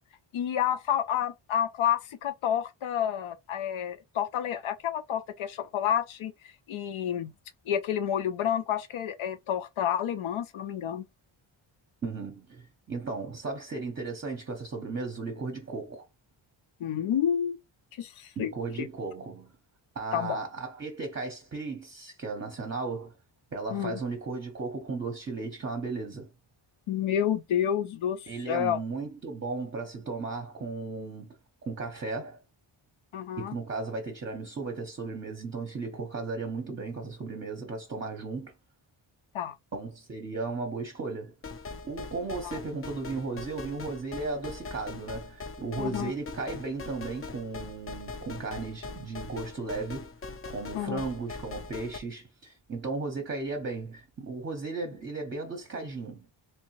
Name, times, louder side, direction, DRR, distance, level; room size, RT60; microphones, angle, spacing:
voice 1, 0.3-7.3 7.7-11.0 16.8-17.6 18.0-18.5 18.8-18.9 20.1-20.4 23.7-24.0 26.9-28.8 33.1-33.6 39.3-39.6 42.4-42.6 45.8-46.1 50.7-51.1, left 9 dB, 75° left, 0.7 m, -29 dB
voice 2, 12.0-16.0 18.4-19.5 19.9-23.1 23.5-26.3 28.3-31.4 31.6-32.4 33.4-38.5 39.7-41.4 41.8-50.1 50.5-56.3, right 3 dB, 25° right, 0.7 m, -35 dB
sound 1, 41.4-52.0, left 4 dB, 30° left, 0.5 m, -41 dB
3.3 x 3.1 x 3.1 m
wide cardioid pair, 140°, 49 cm